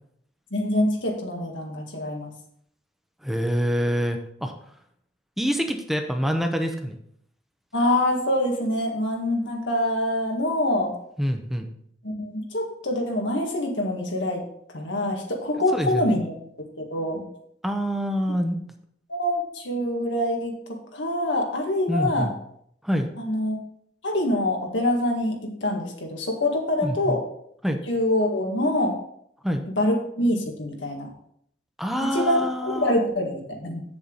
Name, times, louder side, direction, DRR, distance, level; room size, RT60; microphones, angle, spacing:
voice 1, 0.5-2.3 7.7-10.9 12.0-14.4 14.7-16.4 16.9-17.2 19.1-20.6 20.9-22.3 23.2-23.6 24.0-27.2 27.9-29.0 29.7-31.1 32.0-33.8, left 1 dB, 90° left, 1 dB, 1.8 m, -25 dB
voice 2, 3.2-4.5 5.4-7.0 11.2-11.7 15.5-16.2 17.6-18.6 21.9-22.3 22.8-23.1 26.8-27.2 27.6-27.8 29.4-29.6 31.8-33.0, equal, ahead, 5 dB, 0.7 m, -26 dB
8.0 x 7.0 x 3.9 m, 0.68 s
head